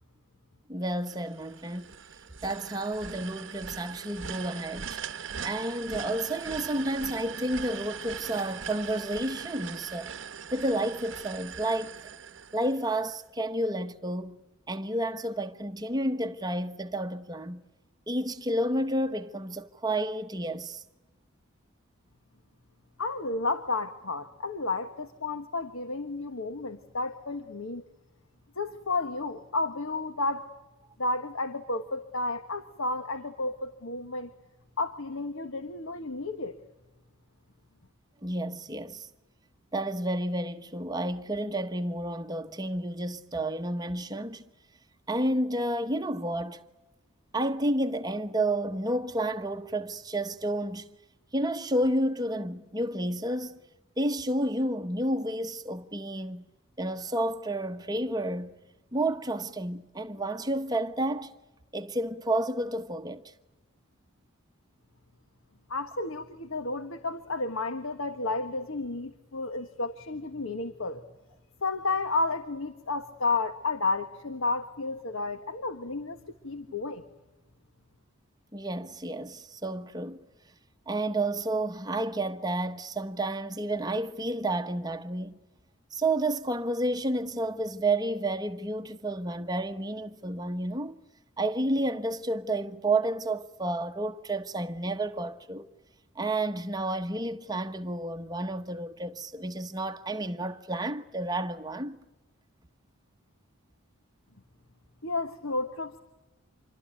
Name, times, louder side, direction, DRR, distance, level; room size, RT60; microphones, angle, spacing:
voice 1, 0.7-1.9 2.4-10.1 10.5-12.1 12.5-14.4 14.7-17.6 18.1-20.8 38.2-39.1 39.7-44.4 45.1-46.6 47.3-50.9 51.3-53.6 54.0-56.4 56.8-58.6 58.9-61.4 61.7-63.3 78.5-80.2 80.9-85.4 85.9-90.9 91.4-95.7 96.1-102.0, right 1 dB, 20° right, 1.0 m, -31 dB
sound 1, 1.0-13.1, right 7 dB, 60° right, 0.9 m, -41 dB
voice 2, 23.0-27.8 28.6-30.5 31.0-34.3 34.8-36.6 65.7-71.0 71.6-77.0 105.0-106.0, left 3 dB, 75° left, 1.4 m, -32 dB
27.0 x 23.5 x 9.1 m
head